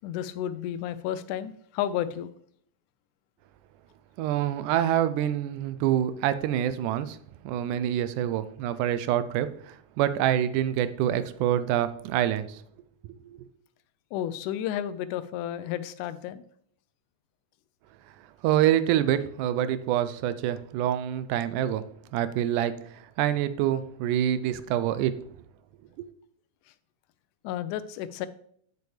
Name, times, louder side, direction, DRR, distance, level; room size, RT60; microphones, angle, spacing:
voice 1, 0.0-2.3 14.1-16.5 27.4-28.3, left 11 dB, 90° left, 13 dB, 2.1 m, -32 dB
voice 2, 4.2-7.2 7.4-12.6 13.3-13.4 18.4-21.8 22.1-25.1 26.0-26.1, right 11 dB, 90° right, 13 dB, 2.1 m, -26 dB
8.1 x 6.9 x 3.3 m, 0.62 s
omnidirectional pair, 3.5 m